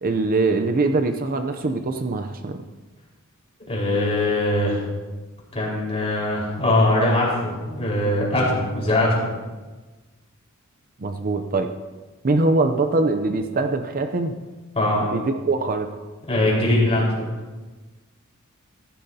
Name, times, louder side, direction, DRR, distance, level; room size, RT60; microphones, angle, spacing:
voice 1, 0.0-2.6 11.0-11.7 12.2-14.4 15.0-15.9, right 3 dB, 40° right, 7 dB, 0.6 m, -22 dB
voice 2, 3.7-4.8 5.5-9.3 14.7-15.0 16.3-17.3, left 1 dB, 30° left, -5 dB, 4.5 m, -21 dB
15.0 x 14.0 x 2.8 m, 1.2 s
head